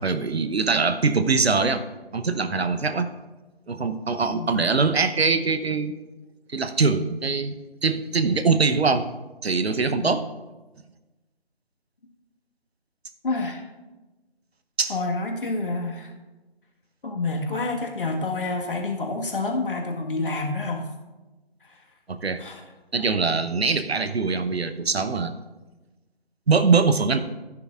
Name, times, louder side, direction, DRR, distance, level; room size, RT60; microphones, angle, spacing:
voice 1, 0.0-1.8 2.1-3.1 3.7-5.9 6.5-9.1 9.4-10.3 14.8-14.9 22.1-22.4 22.9-25.4 26.5-27.2, right 4 dB, 75° right, 11 dB, 0.9 m, -23 dB
voice 2, 13.2-13.6 14.9-16.1 17.0-20.9 21.7-21.8 22.4-22.6, left 3 dB, 55° left, 2 dB, 1.7 m, -28 dB
16.0 x 9.7 x 2.5 m, 1.2 s
figure-of-eight pair, 160°, 31 cm